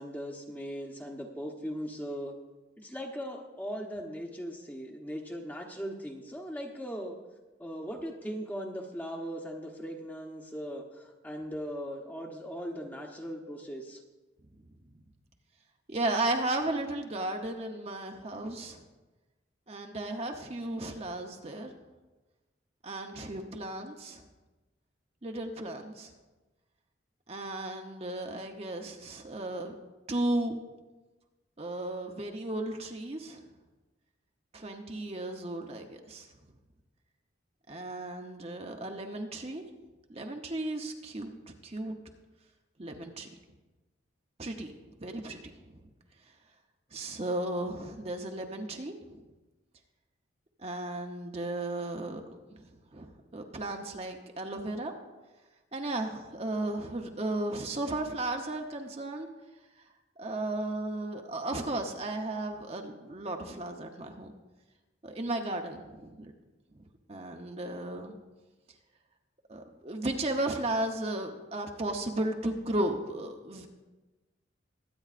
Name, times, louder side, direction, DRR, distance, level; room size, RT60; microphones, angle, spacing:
voice 1, 0.0-2.3 2.8-7.2 7.6-14.0, equal, 10° left, 2 dB, 1.0 m, -39 dB
voice 2, 15.9-18.8 19.7-21.7 22.8-24.2 25.2-26.1 27.3-29.7 30.1-30.6 31.6-33.4 34.5-36.3 37.7-39.6 40.1-41.3 41.6-42.0 42.8-43.3 44.4-44.7 45.0-45.4 45.7-45.8 46.9-49.2 50.6-52.3 52.6-54.9 55.7-59.3 60.2-64.3 65.0-66.3 66.7-68.2 69.5-73.7, right 2 dB, 30° right, 3 dB, 0.8 m, -35 dB
22.0 x 9.3 x 2.5 m, 1.2 s
head